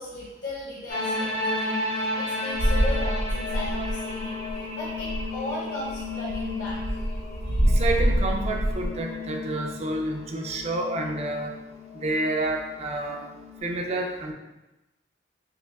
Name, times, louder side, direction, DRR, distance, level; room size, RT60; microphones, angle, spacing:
voice 1, 0.0-6.8 7.4-7.8, left 1 dB, 70° left, -8 dB, 0.8 m, -37 dB
sound 1, 0.9-13.6, left 2 dB, 45° left, 1.1 m, -33 dB
sound 2, 2.5-4.2 4.5-4.6 4.9-5.4 5.9-8.9, equal, 85° right, 0.5 m, -25 dB
voice 2, 7.8-11.5 12.0-13.3 13.6-14.3, right 2 dB, 40° right, 2 dB, 0.4 m, -29 dB
4.6 x 2.3 x 2.3 m, 1.0 s
head